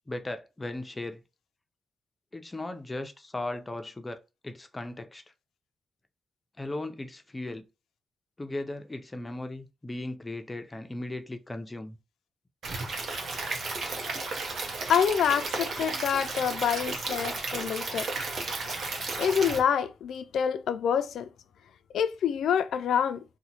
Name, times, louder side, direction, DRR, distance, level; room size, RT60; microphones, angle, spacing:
voice 1, 0.1-1.2 2.3-4.2 4.4-5.2 6.6-7.7 8.4-12.0, left 2 dB, 15° left, 0.4 m, -37 dB
Stream / Liquid, 12.6-19.6, right 3 dB, 55° right, 0.9 m, -33 dB
voice 2, 14.9-18.1 19.2-21.3 21.9-23.2, left 8 dB, 85° left, 0.3 m, -27 dB
2.8 x 2.1 x 4.0 m
wide cardioid pair, 145°, 0 cm